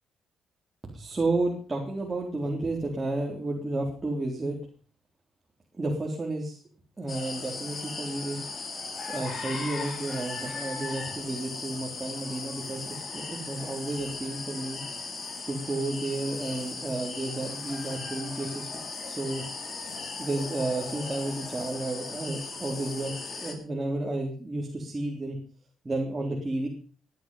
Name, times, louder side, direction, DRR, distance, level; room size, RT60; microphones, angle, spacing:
voice 1, 0.9-4.6 5.8-6.6 7.0-8.4 9.1-14.8 15.5-18.7 19.1-19.4 20.2-23.1 23.4-25.4 25.8-26.7, right 2 dB, 25° right, -1 dB, 3.8 m, -31 dB
sound 1, 7.1-23.5, left 4 dB, 40° left, 3.7 m, -37 dB
17.0 x 11.0 x 5.5 m, 0.40 s
cardioid pair, 90°, 0 cm